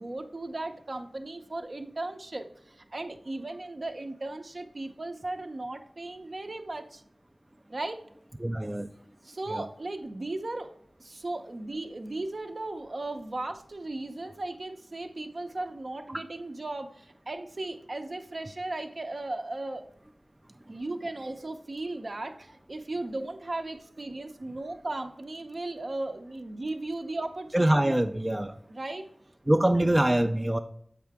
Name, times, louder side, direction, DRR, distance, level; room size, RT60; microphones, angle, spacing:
voice 1, 0.0-7.0 7.7-8.0 9.2-19.8 20.7-27.9 28.7-29.0 29.6-29.7, right 2 dB, 55° right, 6 dB, 0.6 m, -36 dB
voice 2, 8.4-8.9 9.5-9.6 16.1-16.2 27.5-28.6 29.5-30.6, right 1 dB, 20° right, 7 dB, 0.3 m, -24 dB
7.5 x 4.7 x 3.4 m, 0.69 s
wide cardioid pair, 60°, 0 cm